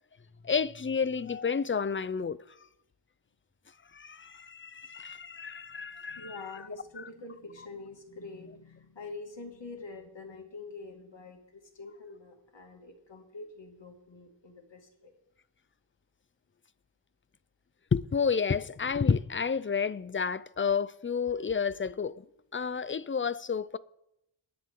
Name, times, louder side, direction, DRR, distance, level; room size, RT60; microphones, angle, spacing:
voice 1, 0.4-2.4 3.9-6.6 7.0-7.1 17.9-22.2 22.5-23.8, left 6 dB, 25° left, 0.4 m, -30 dB
voice 2, 6.1-15.1, left 3 dB, 60° left, 2.5 m, -46 dB
23.0 x 10.5 x 3.8 m
wide cardioid pair, 90°, 48 cm